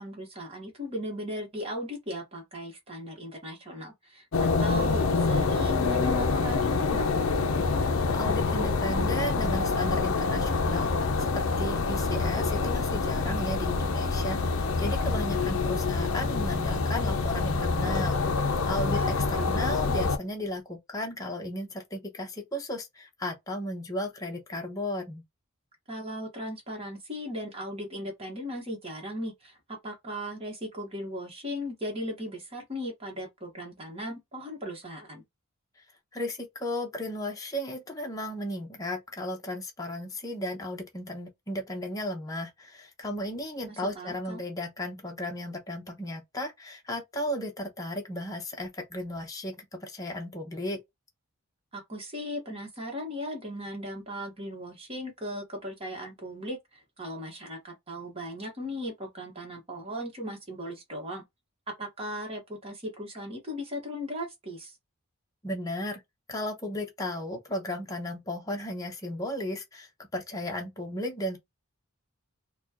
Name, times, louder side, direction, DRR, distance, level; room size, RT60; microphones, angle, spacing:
voice 1, 0.0-7.2 18.8-19.7 25.9-35.2 43.7-44.4 51.7-61.2 61.7-64.7, equal, 25° right, 1.3 m, -37 dB
sound 1, 4.3-20.2, left 4 dB, 65° left, 0.6 m, -26 dB
voice 2, 8.1-25.2 36.1-50.8 65.4-66.0 66.3-71.4, left 1 dB, 15° left, 0.8 m, -35 dB
4.1 x 2.3 x 2.9 m
head